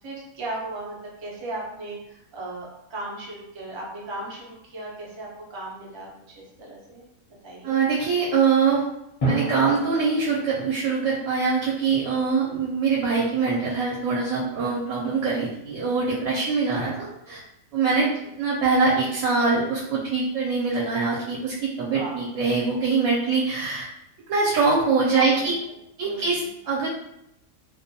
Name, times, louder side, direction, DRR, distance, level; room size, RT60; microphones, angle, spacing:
voice 1, 0.0-6.1 6.3-7.0 7.4-7.7 18.0-18.3 21.9-22.2 25.1-25.5 26.0-26.5, right 2 dB, 45° right, -4 dB, 0.3 m, -36 dB
voice 2, 7.6-8.8 9.2-17.4 17.7-18.1 18.4-23.9 24.3-25.5 26.0-26.9, right 4 dB, 75° right, -5 dB, 1.0 m, -23 dB
Drum, 9.2-11.0, right 2 dB, 35° left, 0.6 m, -30 dB
2.5 x 2.1 x 2.7 m, 0.83 s
omnidirectional pair, 1.4 m